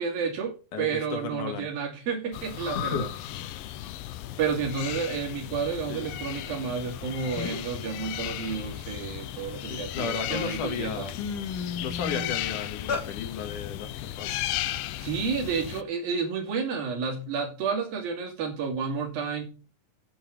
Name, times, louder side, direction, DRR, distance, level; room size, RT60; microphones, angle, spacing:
voice 1, 0.0-3.1 4.4-11.1 15.0-19.5, right 6 dB, 80° right, 4.3 m, -31 dB
voice 2, 0.7-1.7 2.7-3.1 3.4-3.6 5.9-6.1 9.6-11.2 11.8-14.3, left 6 dB, 65° left, 2.9 m, -34 dB
sound 1, 2.3-15.8, left 13 dB, 85° left, 2.5 m, -35 dB
sound 2, 7.4-7.8 8.2-9.8 10.4-10.5 10.8-13.1, left 5 dB, 35° left, 2.1 m, -34 dB
9.0 x 8.8 x 4.8 m
omnidirectional pair, 4.1 m